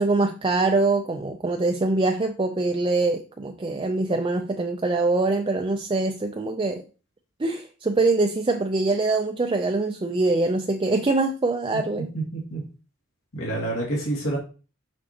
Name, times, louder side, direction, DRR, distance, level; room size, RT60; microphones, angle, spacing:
voice 1, 0.0-6.8 7.4-12.1, right 3 dB, 25° right, 5 dB, 0.4 m, -24 dB
voice 2, 12.3-12.6 13.3-14.4, right 1 dB, 70° left, -3 dB, 2.3 m, -28 dB
6.3 x 6.0 x 2.9 m, 0.35 s
head